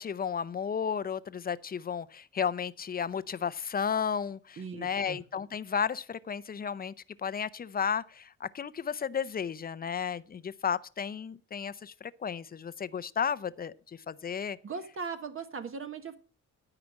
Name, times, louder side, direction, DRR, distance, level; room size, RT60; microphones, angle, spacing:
voice 1, 0.0-14.6, left 7 dB, 30° left, 0.6 m, -33 dB
voice 2, 4.6-5.2 14.6-16.2, right 5 dB, 45° right, 1.2 m, -39 dB
12.5 x 5.0 x 7.3 m
cardioid pair, 90°, 30 cm